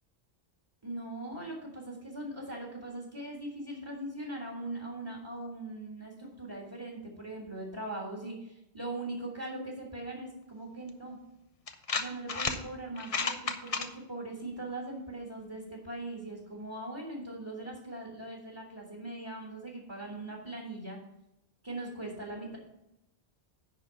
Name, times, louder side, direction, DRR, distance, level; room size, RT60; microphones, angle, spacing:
voice 1, 0.8-11.2 12.0-21.0 21.6-22.6, right 2 dB, 25° right, -2 dB, 1.9 m, -40 dB
sound 1, 10.9-11.0 11.7-12.6 13.0-13.9, left 4 dB, 40° left, 0.7 m, -32 dB
10.5 x 4.1 x 7.0 m, 0.87 s
omnidirectional pair, 1.1 m